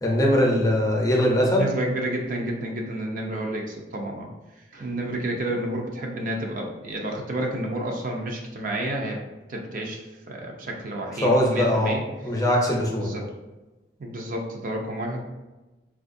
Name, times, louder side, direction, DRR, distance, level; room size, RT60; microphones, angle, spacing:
voice 1, 0.0-1.6 11.2-12.0 12.2-13.1, left 1 dB, 20° left, -1 dB, 0.6 m, -21 dB
voice 2, 1.5-4.3 4.7-9.2 9.5-12.0 13.0-13.3 14.0-15.2, right 1 dB, 50° right, 1 dB, 0.5 m, -30 dB
4.3 x 2.3 x 2.6 m, 1.1 s
head